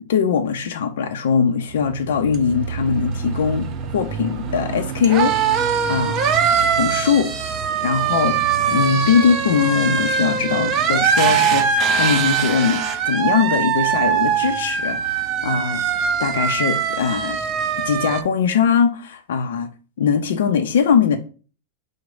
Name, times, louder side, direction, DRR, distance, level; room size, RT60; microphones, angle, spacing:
voice 1, 0.1-6.2 6.8-17.4 17.8-19.7 20.0-21.2, left 6 dB, 85° left, 0.5 m, -21 dB
sound 1, 1.8-18.2, right 7 dB, 35° right, 0.5 m, -22 dB
5.0 x 2.1 x 4.7 m
supercardioid pair, 150°, 0 cm